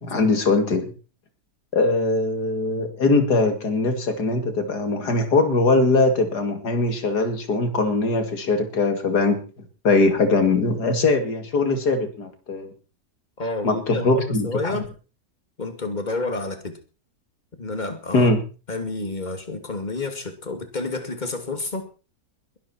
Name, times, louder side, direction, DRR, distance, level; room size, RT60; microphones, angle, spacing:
voice 1, 0.0-0.9 1.7-9.4 9.8-12.7 13.6-14.8 18.1-18.4, left 3 dB, 85° left, 3.0 m, -21 dB
voice 2, 13.4-14.9 15.6-16.7 17.6-18.3 18.7-21.9, left 2 dB, 25° left, 2.5 m, -29 dB
21.5 x 11.5 x 4.4 m
omnidirectional pair, 1.7 m